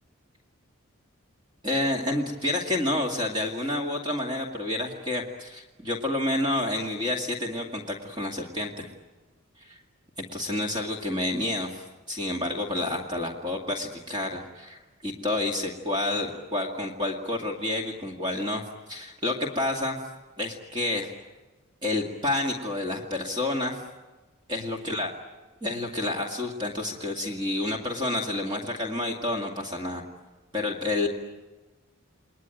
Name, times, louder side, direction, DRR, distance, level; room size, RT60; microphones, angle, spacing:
voice 1, 1.6-8.9 9.6-9.8 10.3-20.0 20.4-21.1 21.8-23.8 24.5-25.1 25.6-30.0 30.5-31.1, left 2 dB, 20° right, 0 dB, 2.1 m, -29 dB
29.5 x 21.5 x 9.2 m, 1.2 s
head